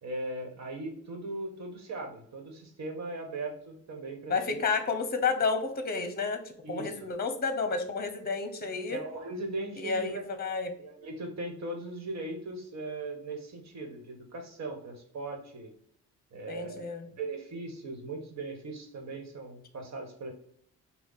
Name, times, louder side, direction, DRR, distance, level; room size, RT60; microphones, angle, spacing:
voice 1, 0.0-4.6 6.6-7.0 8.9-10.5 10.8-15.7 16.3-20.3, right 2 dB, 55° right, 3 dB, 1.4 m, -39 dB
voice 2, 4.3-6.4 6.7-9.0 9.8-10.7 16.5-17.1, left 4 dB, 30° left, 7 dB, 0.9 m, -31 dB
5.7 x 2.3 x 4.0 m, 0.64 s
cardioid pair, 85°, 32 cm